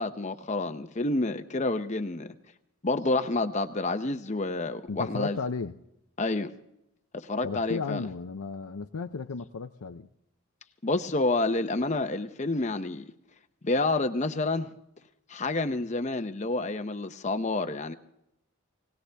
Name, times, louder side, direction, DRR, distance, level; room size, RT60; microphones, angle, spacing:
voice 1, 0.0-2.3 2.8-5.4 6.2-6.5 7.3-8.0 10.8-13.0 13.6-14.7 15.3-17.9, left 2 dB, 30° left, 0.7 m, -28 dB
voice 2, 4.9-5.7 7.4-10.1, left 4 dB, 85° left, 0.6 m, -34 dB
21.5 x 18.0 x 3.4 m
head